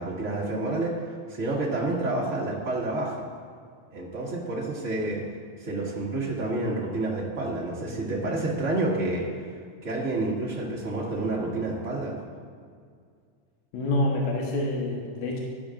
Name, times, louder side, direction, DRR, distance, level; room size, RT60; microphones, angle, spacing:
voice 1, 0.0-3.2 3.9-5.2 5.6-9.5 9.8-12.2, right 2 dB, 30° right, -4 dB, 1.8 m, -29 dB
voice 2, 13.7-15.4, left 1 dB, 70° left, -2 dB, 2.6 m, -27 dB
15.5 x 12.0 x 2.5 m, 2.1 s
omnidirectional pair, 3.7 m